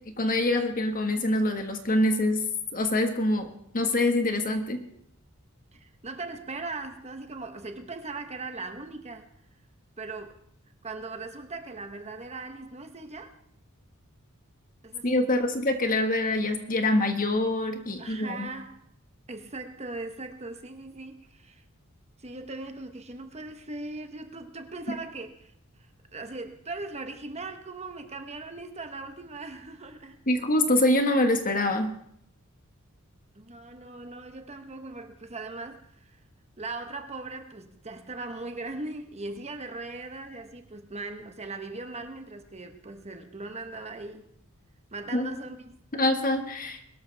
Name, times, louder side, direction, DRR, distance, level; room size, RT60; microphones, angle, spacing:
voice 1, 0.2-2.4 2.7-3.5 3.7-4.8 15.0-18.5 30.3-31.9 45.1-45.3 45.9-46.9, left 1 dB, 40° left, 1.6 m, -25 dB
voice 2, 5.7-9.3 10.0-10.4 10.8-13.3 14.8-15.6 18.0-18.9 19.3-21.6 22.2-25.5 25.8-30.2 33.3-36.2 36.6-44.3 44.9-45.8, right 3 dB, 30° right, 1.2 m, -39 dB
22.0 x 12.5 x 3.5 m
head